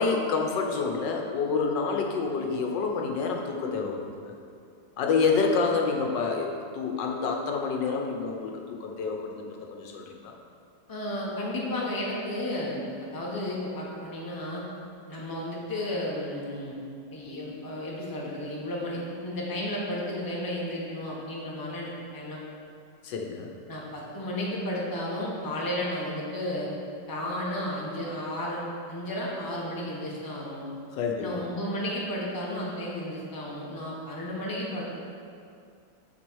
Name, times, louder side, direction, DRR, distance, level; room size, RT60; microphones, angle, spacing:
voice 1, 0.0-4.3 5.0-6.5 6.7-10.3 23.0-23.5 30.9-31.4, left 4 dB, 85° left, 1 dB, 1.5 m, -28 dB
voice 2, 10.9-14.6 15.1-16.7 17.1-22.4 23.7-26.7 27.1-28.6 28.9-30.6 31.2-34.8, left 1 dB, 15° left, -4 dB, 1.0 m, -33 dB
6.1 x 5.0 x 6.2 m, 2.4 s
omnidirectional pair, 1.9 m